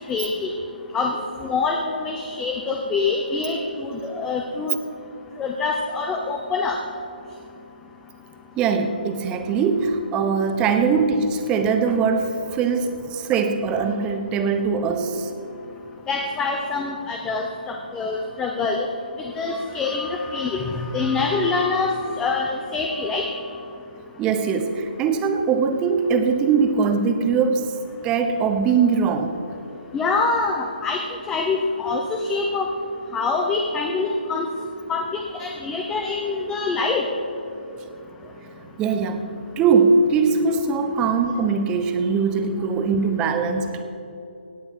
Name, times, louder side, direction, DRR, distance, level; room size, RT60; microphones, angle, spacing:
voice 1, 0.1-0.5 0.9-1.2 1.4-4.8 5.4-6.8 16.1-18.9 19.2-23.3 29.9-32.7 33.1-34.5 34.9-37.1, left 4 dB, 10° left, 2 dB, 0.7 m, -25 dB
voice 2, 8.6-15.3 24.2-27.7 28.0-29.4 38.4-38.5 38.8-39.3 39.6-43.8, right 5 dB, 15° right, 7 dB, 0.9 m, -21 dB
17.5 x 9.5 x 4.7 m, 2.9 s
figure-of-eight pair, 145°, 5 cm